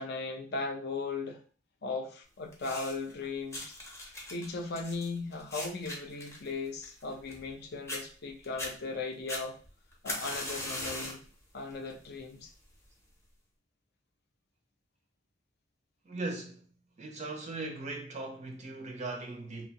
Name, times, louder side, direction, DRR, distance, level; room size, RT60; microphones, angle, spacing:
voice 1, 0.0-1.4 1.8-3.8 4.3-9.6 10.0-11.2 11.5-12.5, left 3 dB, 60° left, 0.5 m, -37 dB
sound 1, 2.5-3.1 3.5-7.6 7.9-8.0 8.4-8.7 9.3-11.3 11.7-12.1 12.8-12.9, left 1 dB, 15° left, 0.6 m, -39 dB
voice 2, 16.0-16.7 17.0-19.7, right 2 dB, 40° right, 0.5 m, -39 dB
2.6 x 2.1 x 2.7 m
head